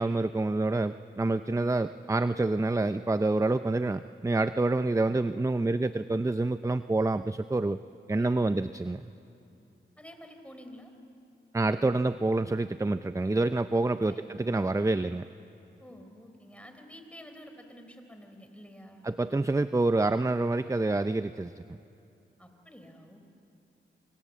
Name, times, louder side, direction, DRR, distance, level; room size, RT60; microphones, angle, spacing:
voice 1, 0.0-7.8 8.1-9.0 11.5-15.2 19.0-21.5, right 2 dB, 15° right, 12 dB, 0.6 m, -27 dB
voice 2, 8.1-8.6 10.0-10.9 14.1-14.4 15.8-19.1 22.4-23.2, equal, 5° left, 5 dB, 4.0 m, -49 dB
26.0 x 25.5 x 7.5 m, 2.7 s
cardioid pair, 50°, 21 cm